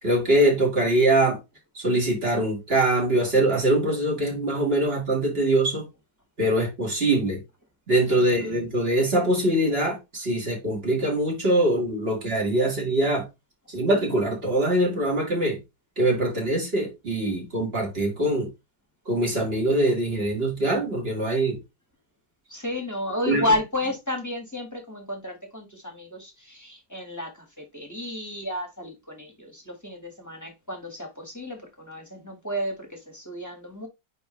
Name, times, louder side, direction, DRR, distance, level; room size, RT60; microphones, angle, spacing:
voice 1, 0.0-1.4 1.7-5.8 6.4-7.4 7.9-13.3 13.7-15.6 16.0-18.5 19.1-21.6 23.3-23.4, right 1 dB, 35° right, 2.1 m, -23 dB
voice 2, 8.1-8.6 22.5-33.9, left 1 dB, 10° left, 1.4 m, -32 dB
9.1 x 3.4 x 3.1 m
omnidirectional pair, 1.8 m